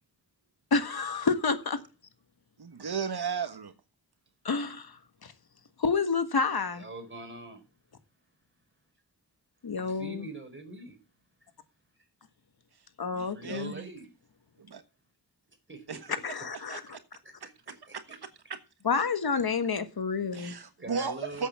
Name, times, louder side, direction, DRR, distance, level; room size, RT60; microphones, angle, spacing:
voice 1, 0.7-1.8 4.4-5.0 5.2-5.3 5.8-6.8 9.6-10.2 13.0-13.7 16.2-16.8 18.8-20.5, left 5 dB, 70° left, 1.6 m, -29 dB
voice 2, 2.6-3.7 13.1-13.9 14.6-14.8 15.9-16.1 16.5-16.8 17.4-17.5 17.9-18.6 20.3-21.5, right 5 dB, 75° right, 1.4 m, -35 dB
voice 3, 6.7-7.6 9.8-11.0 13.3-14.1 15.7-16.0 17.2-17.3 17.6-18.2 20.8-21.5, right 2 dB, 30° right, 4.6 m, -43 dB
8.3 x 8.2 x 7.4 m
cardioid pair, 55°, 39 cm